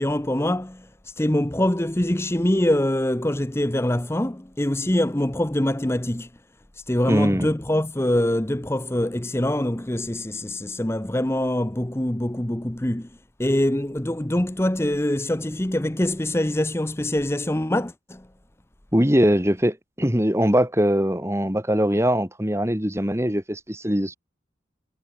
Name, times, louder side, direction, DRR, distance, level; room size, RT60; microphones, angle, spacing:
voice 1, 0.0-6.3 6.7-13.1 13.4-18.3, left 1 dB, 15° left, 0.8 m, -24 dB
voice 2, 7.1-7.5 18.9-24.2, equal, 15° right, 3.7 m, -21 dB
head